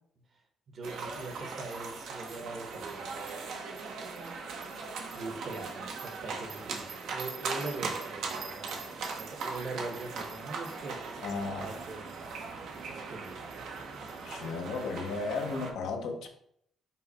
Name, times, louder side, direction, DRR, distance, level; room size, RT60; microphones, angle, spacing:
voice 1, 0.7-3.2 5.1-11.0 11.6-12.0 12.9-13.4, right 3 dB, 55° right, 1.0 m, -42 dB
sound 1, 0.8-15.7, right 4 dB, 80° right, 0.7 m, -39 dB
voice 2, 11.2-11.7 14.2-16.3, left 4 dB, 80° left, 0.6 m, -34 dB
5.5 x 2.0 x 4.0 m
cardioid pair, 90°, 0 cm